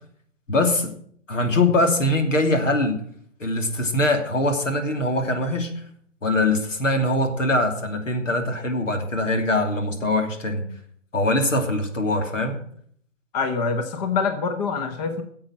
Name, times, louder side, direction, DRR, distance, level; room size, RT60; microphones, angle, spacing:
voice 1, 0.5-0.9 1.3-3.0 3.4-5.7 6.2-10.6 11.1-12.6, left 2 dB, 80° left, 5 dB, 2.9 m, -22 dB
voice 2, 13.3-15.2, left 5 dB, 35° left, 7 dB, 1.3 m, -25 dB
10.0 x 7.8 x 8.8 m, 0.62 s
hypercardioid pair, 150°, 37 cm